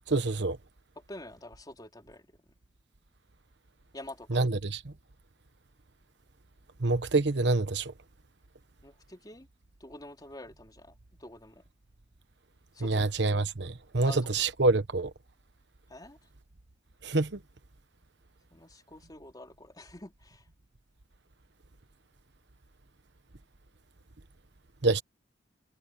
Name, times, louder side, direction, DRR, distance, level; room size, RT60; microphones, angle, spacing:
voice 1, 0.1-0.6 4.3-4.9 6.8-7.9 12.8-15.1 17.0-17.4 24.8-25.0, right 3 dB, 65° right, 1.2 m, -27 dB
voice 2, 1.1-2.2 3.9-4.3 8.8-9.5 9.8-10.9 11.2-11.6 12.8-13.0 14.0-14.2 15.9-16.2 18.5-20.4, left 1 dB, 20° left, 3.8 m, -46 dB
head